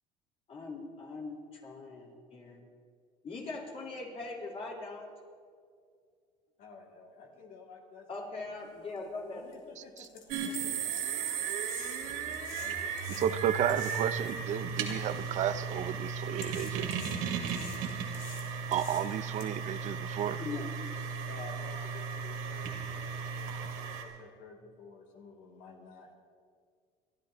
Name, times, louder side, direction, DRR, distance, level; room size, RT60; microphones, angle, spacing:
voice 1, 0.5-2.6 3.2-5.1 8.1-9.4 20.4-20.7, left 3 dB, 40° left, -2 dB, 4.4 m, -41 dB
voice 2, 6.6-8.5 9.3-10.2 10.6-10.9 12.0-13.4 21.2-23.5 23.8-26.1, left 4 dB, 65° left, 0 dB, 2.8 m, -52 dB
sound 1, 9.0-9.1 9.5-9.6 10.0-14.3 14.9-15.9 16.4-19.4, left 6 dB, 85° left, 2.8 m, -48 dB
voice 3, 9.8-10.1 13.1-16.9 18.7-20.4, right 9 dB, 50° right, 13 dB, 0.5 m, -33 dB
sound 2, 10.3-24.0, right 6 dB, 80° right, 2.4 m, -36 dB
30.0 x 12.5 x 3.0 m, 2.2 s
cardioid pair, 110°, 15 cm